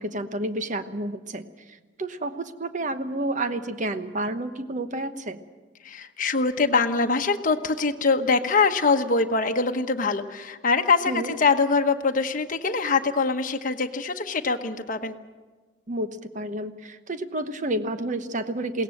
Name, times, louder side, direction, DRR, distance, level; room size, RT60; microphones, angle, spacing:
voice 1, 0.0-1.4 2.0-5.4 11.1-11.4 15.9-18.8, right 1 dB, 40° right, 10 dB, 1.0 m, -30 dB
voice 2, 5.8-15.1, left 4 dB, 45° left, 5 dB, 1.1 m, -23 dB
21.5 x 17.5 x 7.8 m, 1.3 s
head